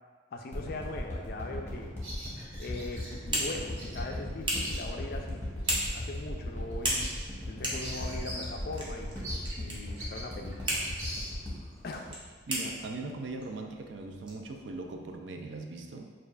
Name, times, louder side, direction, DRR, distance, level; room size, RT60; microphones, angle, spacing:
voice 1, 0.3-2.0 2.6-7.0 7.5-10.8 11.8-12.2, left 2 dB, 45° left, 3 dB, 0.3 m, -40 dB
sound 1, 0.5-12.8 13.3-13.4, left 1 dB, 10° left, 0.8 m, -37 dB
Bird vocalization bird call bird song, 2.0-3.1 3.8-4.0 4.3-5.1 5.6-5.8 6.3-6.4 6.7-8.6 8.8-8.9 9.2-11.7, equal, 85° right, 1.3 m, -43 dB
sound 2, 2.8-15.1, right 1 dB, 25° right, 0.7 m, -38 dB
voice 2, 12.5-16.1, right 3 dB, 60° right, 3 dB, 0.4 m, -39 dB
6.6 x 2.4 x 2.4 m, 1.5 s
head